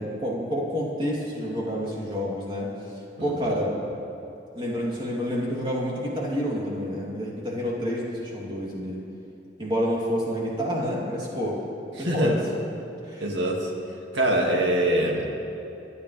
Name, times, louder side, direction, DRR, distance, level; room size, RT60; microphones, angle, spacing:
voice 1, 0.0-2.7 3.2-3.8 4.5-9.0 9.6-11.6 12.0-12.4 13.0-13.2, equal, 25° right, -5 dB, 2.9 m, -28 dB
voice 2, 3.2-3.6 12.0-12.4 13.2-13.7 14.1-15.3, right 1 dB, 80° right, -1 dB, 2.1 m, -24 dB
24.0 x 11.0 x 3.3 m, 3.0 s
head